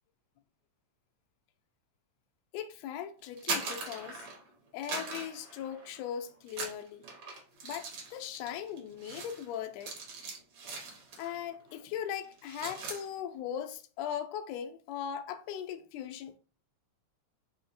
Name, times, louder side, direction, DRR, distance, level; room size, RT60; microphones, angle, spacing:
voice 1, 2.5-4.3 4.7-7.0 7.6-10.0 11.2-16.4, left 9 dB, 85° left, 1.5 m, -39 dB
sound 1, 3.2-4.5 4.8-6.1 6.5-11.4 11.7-11.9 12.2-13.0, right 4 dB, 60° right, 1.7 m, -40 dB
5.0 x 2.1 x 3.9 m
omnidirectional pair, 3.5 m